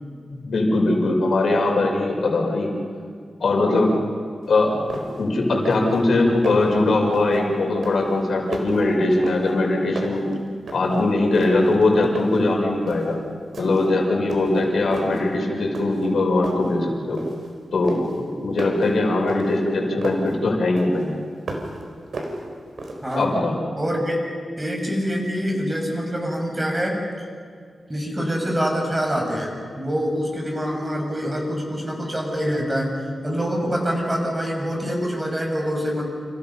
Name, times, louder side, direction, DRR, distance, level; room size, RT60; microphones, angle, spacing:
voice 1, 0.3-2.7 3.4-3.9 4.5-4.8 5.2-10.3 10.7-13.2 13.6-17.2 17.7-21.1 23.1-23.6, left 2 dB, 75° left, 1 dB, 5.5 m, -21 dB
sound 1, 4.4-4.5 4.9-5.3 5.6-6.0 6.3-6.8 7.1-7.5 7.8-9.7 10.0-11.0 11.3-12.5 12.9-13.1 13.5-14.0 14.3-15.2 15.7-16.1 16.4-17.5 17.8-20.3 20.8-21.8 22.1-23.2, right 2 dB, 70° right, 4.6 m, -34 dB
voice 2, 23.0-23.4 23.7-24.2 24.6-27.2 27.9-36.1, equal, 20° right, 0 dB, 6.7 m, -25 dB
29.5 x 28.0 x 5.7 m, 2.1 s
wide cardioid pair, 110°, 0 cm